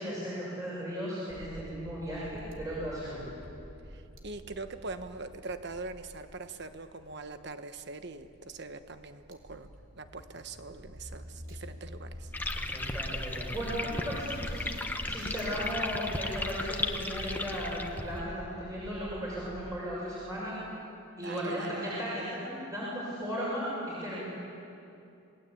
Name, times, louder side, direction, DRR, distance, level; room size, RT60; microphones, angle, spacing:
voice 1, 0.0-3.3 12.6-14.7 15.0-20.5 21.2-24.2, equal, 15° right, -7 dB, 6.7 m, -36 dB
sound 1, 1.3-19.7, equal, 70° right, 3.1 m, -49 dB
voice 2, 3.9-9.7 10.0-12.3 21.2-21.8, right 3 dB, 55° right, 9 dB, 1.3 m, -42 dB
sound 2, 12.3-18.2, left 2 dB, 10° left, 1.2 m, -35 dB
28.0 x 20.5 x 8.5 m, 2.6 s
head